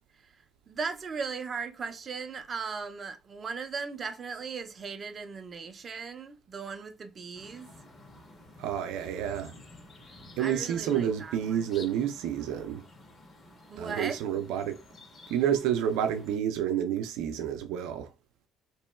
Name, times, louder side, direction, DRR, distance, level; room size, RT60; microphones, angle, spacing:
voice 1, 0.7-7.7 10.4-11.6 13.7-14.2, right 5 dB, 35° right, 0.6 m, -37 dB
sound 1, 7.3-16.4, left 2 dB, 30° left, 1.3 m, -52 dB
voice 2, 8.6-9.5 10.4-12.8 13.8-14.8 15.3-18.1, right 9 dB, 85° right, 0.5 m, -29 dB
4.2 x 3.0 x 2.2 m
cardioid pair, 100°, 0 cm